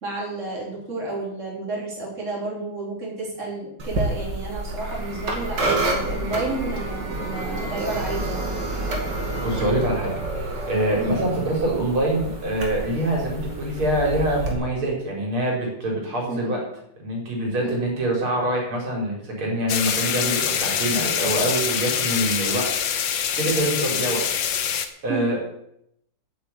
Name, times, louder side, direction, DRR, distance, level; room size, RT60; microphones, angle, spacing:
voice 1, 0.0-8.5 11.0-11.2 16.3-16.5 17.6-17.8 23.2-23.3 25.1-25.3, right 2 dB, 30° right, -4 dB, 4.3 m, -31 dB
sound 1, 3.8-14.5, right 2 dB, 50° right, 3.0 m, -29 dB
voice 2, 9.4-16.6 17.0-24.2 24.7-24.8 25.0-25.4, right 1 dB, 70° right, -1 dB, 4.8 m, -25 dB
sound 2, 19.7-24.9, left 8 dB, 60° left, 1.6 m, -25 dB
9.3 x 8.5 x 9.0 m, 0.76 s
omnidirectional pair, 2.4 m